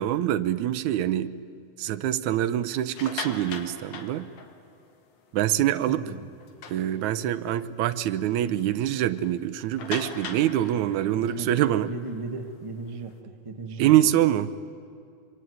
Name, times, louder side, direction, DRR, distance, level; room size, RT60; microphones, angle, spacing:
voice 1, 0.0-1.4 1.8-4.3 5.3-6.0 6.7-11.9 13.8-14.5, right 12 dB, 80° right, 14 dB, 2.2 m, -25 dB
sound 1, 2.8-4.9 5.4-5.5 5.9-6.0 6.4-7.4 7.9-8.0 8.4-8.5 9.8-13.1, left 5 dB, 70° left, 3.1 m, -40 dB
voice 2, 5.9-6.3 11.1-13.9, right 3 dB, 60° right, 5 dB, 0.3 m, -36 dB
25.5 x 24.5 x 9.3 m, 2.4 s
omnidirectional pair, 3.4 m